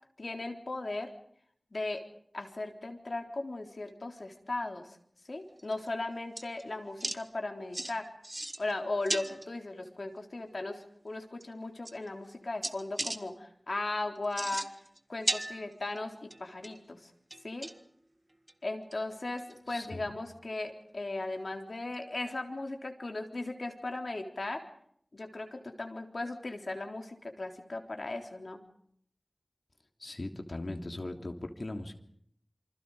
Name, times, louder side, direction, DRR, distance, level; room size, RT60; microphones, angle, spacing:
voice 1, 0.2-1.1 1.7-2.0 2.3-5.0 5.3-8.0 8.6-14.6 15.1-17.1 17.4-17.7 18.6-24.6 25.1-28.6, left 2 dB, 75° left, 3 dB, 3.7 m, -37 dB
sound 1, 5.6-5.9 6.4-6.6 7.0-7.2 7.7-7.9 8.2-8.7 9.0-9.5 10.8-10.9 11.4-11.5 11.8-12.3 12.6-13.2 14.2-15.0 15.2-16.0 16.3-16.8 17.3-17.9 18.5-18.6 18.9-19.0 19.4-19.5 19.8-19.9 21.9-22.0, right 1 dB, 30° right, 1.6 m, -36 dB
voice 2, 19.7-20.1 30.0-31.9, left 2 dB, 60° left, 5 dB, 3.1 m, -39 dB
27.5 x 25.5 x 5.0 m, 0.67 s
wide cardioid pair, 55°, 0 cm